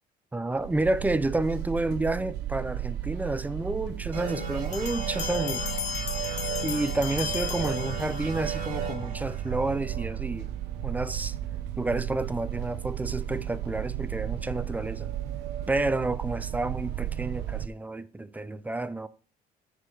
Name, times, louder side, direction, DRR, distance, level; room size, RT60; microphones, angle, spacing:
voice 1, 0.3-5.7 6.6-10.5 10.8-11.3 11.8-15.2 15.7-19.1, right 2 dB, 10° right, 0.4 m, -30 dB
sound 1, 0.6-17.7, right 12 dB, 85° right, 0.6 m, -34 dB
sound 2, 4.1-11.4, right 4 dB, 55° right, 2.7 m, -36 dB
Bell, 4.7-8.5, left 8 dB, 45° left, 0.9 m, -36 dB
6.7 x 4.5 x 6.2 m
cardioid pair, 110°, 17 cm